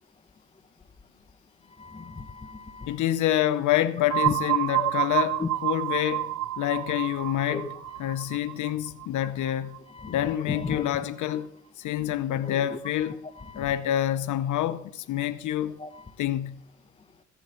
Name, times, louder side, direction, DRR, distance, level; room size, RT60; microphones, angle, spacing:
voice 1, 1.8-2.9 4.3-4.4 4.8-4.9 5.4-5.5 7.5-7.6 10.0-10.1 10.5-10.9 12.7-12.8 13.5-13.7 15.8-15.9, left 4 dB, 20° left, 1.0 m, -34 dB
voice 2, 2.9-9.8 10.1-11.5 11.8-13.2 13.5-15.8 16.2-16.6, left 12 dB, 75° left, 0.7 m, -27 dB
sound 1, 4.1-9.8, right 16 dB, 70° right, 0.6 m, -29 dB
16.0 x 10.5 x 4.3 m
cardioid pair, 90°, 30 cm